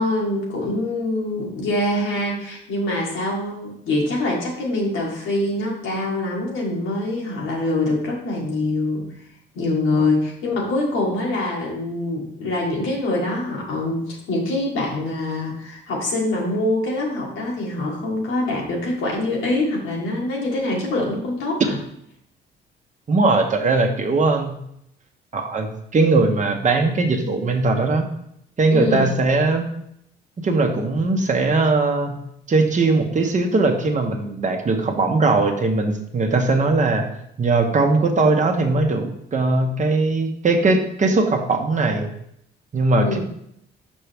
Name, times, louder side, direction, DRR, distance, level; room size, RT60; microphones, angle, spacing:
voice 1, 0.0-9.1 9.5-21.8 28.7-29.1 42.9-43.2, left 2 dB, 90° left, -3 dB, 1.8 m, -24 dB
voice 2, 23.1-24.6 25.3-28.1 28.6-29.7 30.4-32.2 32.5-37.1 37.4-42.1 42.7-43.2, right 3 dB, 40° right, 4 dB, 1.0 m, -20 dB
5.7 x 5.3 x 3.5 m, 0.74 s
cardioid pair, 90°, 20 cm